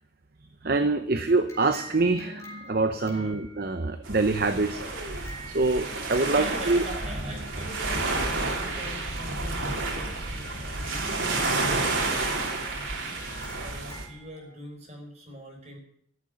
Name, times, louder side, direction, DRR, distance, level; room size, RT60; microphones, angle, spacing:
voice 1, 0.6-4.8 5.5-6.8, right 3 dB, 50° right, 9 dB, 0.8 m, -25 dB
sound 1, 1.3-4.0 4.7-14.5, left 1 dB, 15° left, 4.7 m, -49 dB
sound 2, 4.0-14.1, right 3 dB, 85° right, 3.0 m, -30 dB
voice 2, 6.0-15.8, equal, 35° right, 1 dB, 4.7 m, -43 dB
14.5 x 7.7 x 9.4 m, 0.69 s
head